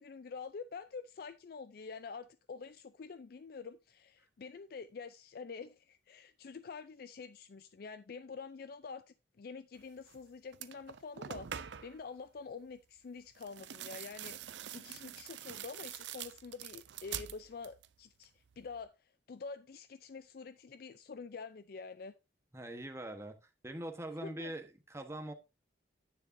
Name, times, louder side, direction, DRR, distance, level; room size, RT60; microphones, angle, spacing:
voice 1, 0.0-9.0 9.4-22.1 24.2-24.5, left 5 dB, 55° left, 0.4 m, -47 dB
sound 1, 10.1-10.2 10.5-12.0 13.4-17.9 18.2-18.8, right 10 dB, 80° right, 0.5 m, -45 dB
voice 2, 22.5-23.4 23.6-25.3, right 1 dB, 15° right, 1.1 m, -42 dB
9.6 x 9.5 x 2.6 m
head